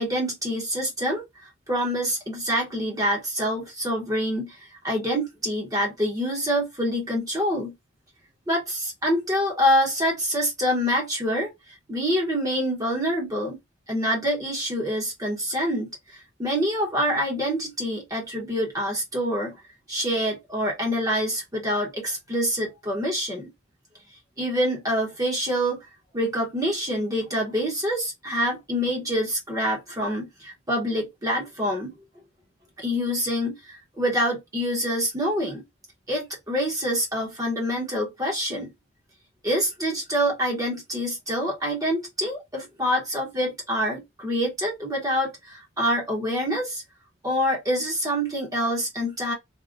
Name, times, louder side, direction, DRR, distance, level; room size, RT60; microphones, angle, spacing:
voice 1, 0.0-7.7 8.5-13.6 13.9-19.6 19.9-23.5 24.4-25.8 26.1-31.9 32.8-35.6 36.1-38.7 39.4-46.8 47.2-49.3, equal, 20° right, 0.9 m, -26 dB
3.5 x 2.1 x 2.4 m
head